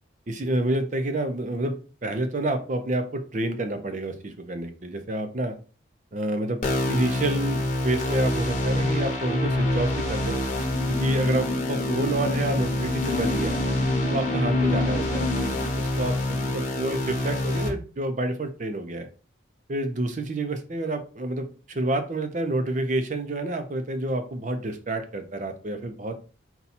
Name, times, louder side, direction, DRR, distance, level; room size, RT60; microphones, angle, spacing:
voice 1, 0.3-5.6 6.1-10.4 10.9-13.6 14.1-19.1 19.7-26.2, right 1 dB, 40° right, 7 dB, 0.5 m, -29 dB
sound 1, 6.6-17.7, left 1 dB, 40° left, 0.9 m, -26 dB
sound 2, 10.6-15.7, left 3 dB, 20° left, 0.5 m, -32 dB
4.1 x 2.3 x 4.1 m, 0.37 s
head